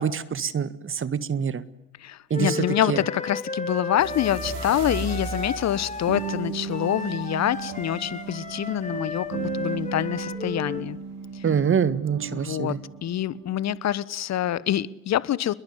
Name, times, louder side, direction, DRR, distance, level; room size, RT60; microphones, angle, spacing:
voice 1, 0.0-1.7 2.3-2.6 2.9-3.0 11.4-12.8, right 7 dB, 35° right, 16 dB, 1.8 m, -25 dB
voice 2, 2.0-11.0 11.3-11.5 12.3-15.5, left 11 dB, 45° left, 20 dB, 1.2 m, -26 dB
Wind instrument woodwind instrument, 2.3-10.9, left 3 dB, 20° left, 4.4 m, -34 dB
sound 1, 4.0-13.7, right 6 dB, 65° right, 4.4 m, -35 dB
28.5 x 22.0 x 9.6 m, 0.91 s
hypercardioid pair, 60°, 36 cm